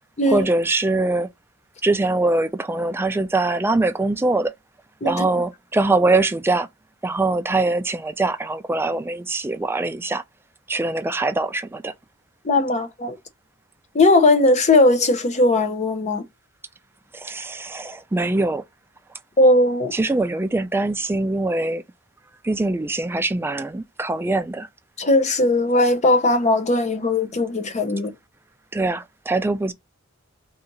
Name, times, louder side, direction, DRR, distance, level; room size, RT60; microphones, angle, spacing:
voice 1, 0.3-1.3 1.8-4.5 5.0-6.7 7.0-10.2 10.7-11.9 17.1-18.6 19.9-21.8 22.4-24.7 28.7-29.7, right 2 dB, 10° right, 0.3 m, -22 dB
voice 2, 12.4-13.2 13.9-16.2 19.4-19.9 25.0-28.1, left 2 dB, 35° left, 0.6 m, -18 dB
2.7 x 2.4 x 3.8 m
head